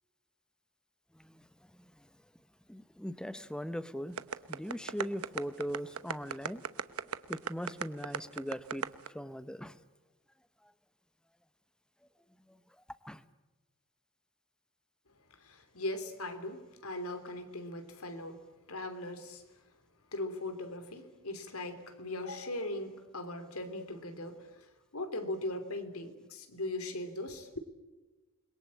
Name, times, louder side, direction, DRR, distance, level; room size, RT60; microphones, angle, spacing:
voice 1, 2.7-4.2 4.5-6.6 7.3-8.9 9.1-9.8 12.5-12.6 13.0-13.2, equal, 5° left, 1.0 m, -40 dB
sound 1, 4.2-9.1, right 6 dB, 85° right, 1.0 m, -35 dB
voice 2, 15.3-19.4 20.1-27.6, left 1 dB, 90° left, 3.1 m, -39 dB
28.5 x 22.0 x 8.6 m
head